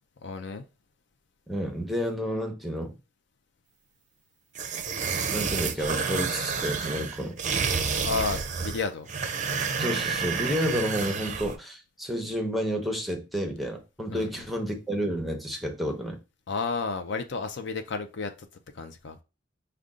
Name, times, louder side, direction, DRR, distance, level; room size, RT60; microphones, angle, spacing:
voice 1, 0.2-0.6 8.0-9.1 14.1-14.4 16.5-18.3 18.7-19.2, left 4 dB, 65° left, 0.5 m, -32 dB
voice 2, 1.5-3.0 5.3-7.4 9.8-16.2, equal, ahead, 0.8 m, -30 dB
sound 1, 4.5-11.6, right 5 dB, 40° right, 0.5 m, -29 dB
5.2 x 2.3 x 3.6 m
head